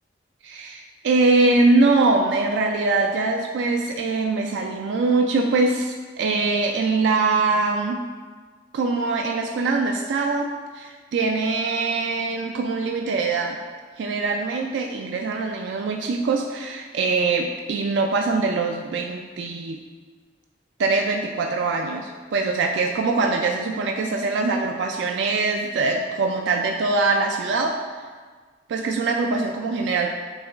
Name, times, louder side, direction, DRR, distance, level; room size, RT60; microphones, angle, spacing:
voice 1, 0.4-8.0 8.7-10.5 10.7-13.6 14.0-19.8 20.8-27.7 28.7-30.1, right 3 dB, 75° right, 2 dB, 0.3 m, -23 dB
6.6 x 2.3 x 3.3 m, 1.5 s
head